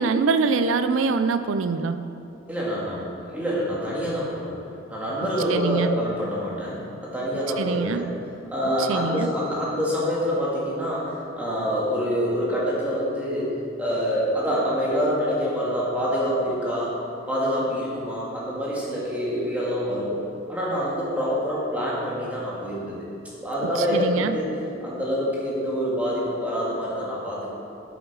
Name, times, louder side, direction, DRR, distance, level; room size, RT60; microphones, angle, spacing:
voice 1, 0.0-2.0 5.5-5.9 7.6-8.0 8.9-9.3 23.9-24.3, right 4 dB, 85° right, 10 dB, 0.5 m, -23 dB
voice 2, 2.5-4.5 4.9-8.1 8.5-17.0 17.3-20.2 20.5-23.0 23.4-24.5 24.8-27.5, equal, 10° right, -6 dB, 2.0 m, -26 dB
9.4 x 8.5 x 5.5 m, 2.7 s
head